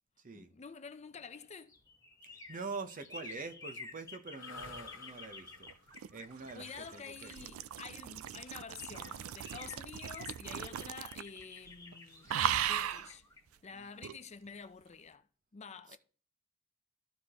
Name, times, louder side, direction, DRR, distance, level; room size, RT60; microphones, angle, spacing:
voice 1, 0.3-1.7 6.5-12.3 12.6-13.2 13.6-15.3 15.5-16.0, left 5 dB, 35° left, 0.5 m, -49 dB
sound 1, 1.1-7.9 8.5-8.6 8.8-14.6 14.9-15.0, left 4 dB, 15° left, 1.0 m, -52 dB
voice 2, 2.2-5.7 6.1-7.3 13.7-14.1 15.9-16.0, right 4 dB, 40° right, 0.8 m, -45 dB
sound 2, 4.2-12.3, left 4 dB, 70° left, 1.5 m, -55 dB
sound 3, 5.7-11.4 11.7-11.9 12.3-13.1 14.0-14.2, right 9 dB, 90° right, 0.4 m, -37 dB
14.0 x 4.7 x 2.9 m
head